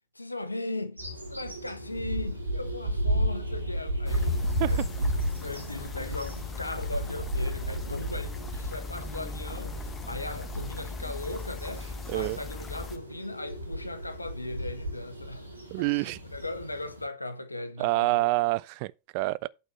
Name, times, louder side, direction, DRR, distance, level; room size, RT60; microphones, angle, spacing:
voice 1, 0.1-4.4 4.7-15.6 15.9-18.3, left 2 dB, 85° left, 1.0 m, -38 dB
sound 1, 1.0-17.0, equal, 85° right, 2.1 m, -34 dB
sound 2, 4.1-13.0, left 3 dB, 20° left, 1.2 m, -39 dB
voice 2, 12.1-12.4 15.7-16.2 17.8-19.5, right 22 dB, 45° right, 0.4 m, -27 dB
8.7 x 4.4 x 5.6 m
figure-of-eight pair, 90°, 0 cm